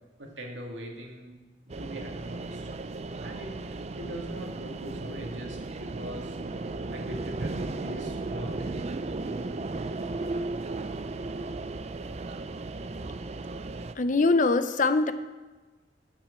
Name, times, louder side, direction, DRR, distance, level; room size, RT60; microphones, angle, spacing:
voice 1, 0.0-1.3 1.8-2.7 3.2-3.5 3.9-8.7, equal, 90° right, 0 dB, 2.1 m, -42 dB
sound 1, 1.7-13.9, right 2 dB, 35° right, 0.4 m, -35 dB
voice 2, 14.0-15.1, left 3 dB, 45° left, 11 dB, 0.6 m, -22 dB
9.1 x 7.4 x 7.0 m, 1.2 s
head